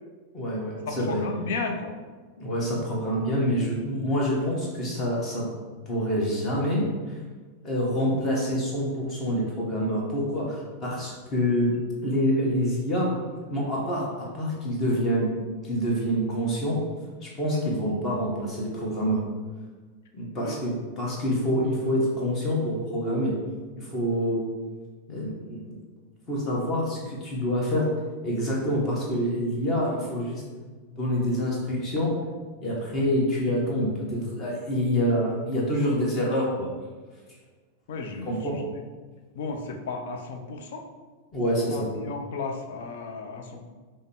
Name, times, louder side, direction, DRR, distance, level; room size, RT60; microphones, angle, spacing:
voice 1, 0.3-1.2 2.4-5.5 5.9-7.2 7.6-11.8 12.0-13.1 13.5-15.3 15.6-16.8 17.2-19.2 20.1-23.3 23.8-24.4 25.1-25.8 26.3-27.9 28.2-30.4 31.0-32.1 32.6-36.7 38.2-38.6 41.3-41.9, equal, 25° left, -3 dB, 1.3 m, -26 dB
voice 2, 0.8-2.0 7.9-8.2 17.5-17.7 20.4-20.6 25.1-25.4 37.9-38.6 39.4-40.8 41.7-43.7, left 4 dB, 55° left, 4 dB, 0.5 m, -34 dB
5.3 x 2.1 x 3.6 m, 1.4 s
figure-of-eight pair, 90°, 0 cm